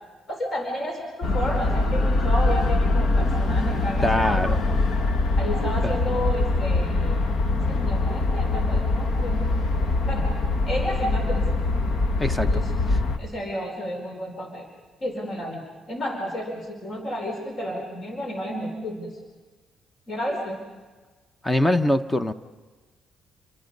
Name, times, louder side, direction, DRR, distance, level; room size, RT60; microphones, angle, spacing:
voice 1, 0.3-4.4 4.9-5.0 5.4-7.2 7.5-9.4 10.1-10.3 10.7-11.4 12.4-12.7 13.2-14.7 15.0-19.1 20.1-20.6, equal, 45° left, 2 dB, 4.4 m, -31 dB
sound 1, 1.2-13.2, left 2 dB, 60° left, 1.6 m, -23 dB
voice 2, 4.0-4.6 5.8-5.9 12.2-12.5 21.4-22.3, left 1 dB, 15° left, 11 dB, 0.9 m, -22 dB
28.5 x 22.5 x 5.4 m, 1.4 s
cardioid pair, 90°, 0 cm